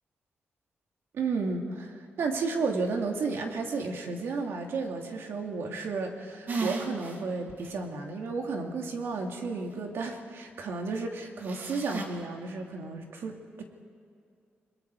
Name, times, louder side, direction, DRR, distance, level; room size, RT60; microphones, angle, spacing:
voice 1, 1.1-13.6, right 4 dB, 80° right, 2 dB, 2.7 m, -33 dB
sound 1, 6.5-7.2 7.6-7.7 11.4-12.1, right 4 dB, 50° right, 2.3 m, -33 dB
29.5 x 22.0 x 4.8 m, 2.5 s
wide cardioid pair, 165°, 4 cm